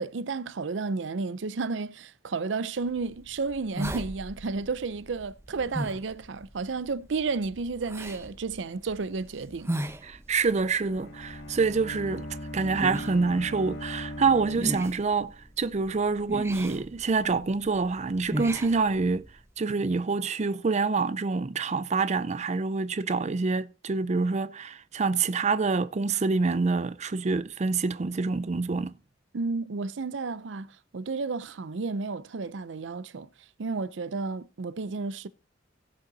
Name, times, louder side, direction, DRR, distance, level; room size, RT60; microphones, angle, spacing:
voice 1, 0.0-9.7 18.4-18.5 29.3-33.3 33.6-35.3, right 4 dB, 80° right, 0.6 m, -32 dB
sound 1, 2.9-19.5, right 1 dB, 15° right, 0.9 m, -39 dB
voice 2, 10.0-12.3 12.5-19.2 19.6-28.9, right 4 dB, 40° right, 0.5 m, -26 dB
Bowed string instrument, 10.7-15.4, left 1 dB, 80° left, 1.8 m, -40 dB
16.5 x 5.5 x 4.0 m
head